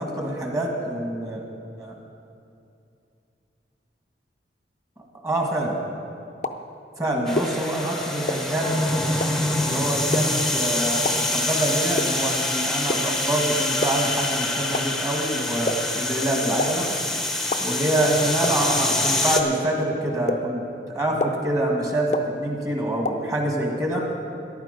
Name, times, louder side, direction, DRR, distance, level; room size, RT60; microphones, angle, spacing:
voice 1, 0.0-1.4 1.8-1.9 5.2-5.8 7.0-8.7 9.6-16.9 17.6-20.6 20.9-24.0, right 1 dB, 20° right, 0 dB, 1.8 m, -26 dB
sound 1, 6.4-6.5 7.4-7.5 8.3-8.4 9.2-9.3 10.1-10.2 11.0-11.1 12.0-12.1 12.9-13.0 13.8-13.9 14.7-14.8 15.7-15.8 16.6-16.7 17.5-17.6 18.4-18.5 19.4-19.5 20.3-20.4 21.2-21.3 22.1-22.2 23.0-23.1, left 3 dB, 40° left, 0.6 m, -24 dB
sound 2, 7.3-19.4, left 1 dB, ahead, 0.9 m, -25 dB
14.0 x 11.5 x 5.2 m, 2.6 s
head